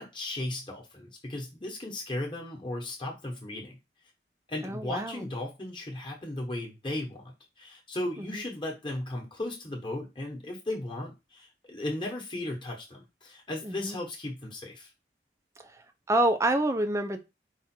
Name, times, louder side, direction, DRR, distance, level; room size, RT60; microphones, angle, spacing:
voice 1, 0.0-3.8 4.5-14.9, left 1 dB, 25° left, -1 dB, 1.0 m, -36 dB
voice 2, 4.6-5.3 8.2-8.4 13.6-14.0 15.6-17.2, right 1 dB, 15° right, 8 dB, 0.5 m, -28 dB
4.8 x 2.5 x 4.3 m, 0.25 s
head